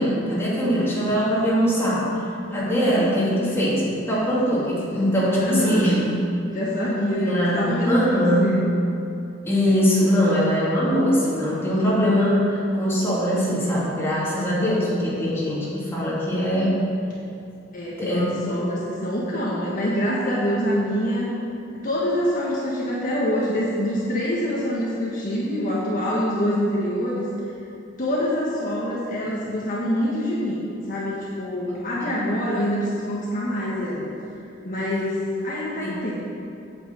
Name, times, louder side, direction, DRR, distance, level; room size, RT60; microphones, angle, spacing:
voice 1, 0.0-2.2 2.5-6.0 7.3-7.6 7.9-8.6 9.4-16.8 18.0-18.6 32.0-32.3 35.8-36.0, equal, 15° left, -8 dB, 2.7 m, -22 dB
voice 2, 5.3-6.0 6.5-8.6 17.7-21.3 21.8-27.3 28.0-34.1 34.6-36.1, equal, 45° left, -6 dB, 1.5 m, -25 dB
8.7 x 6.0 x 7.6 m, 2.5 s
head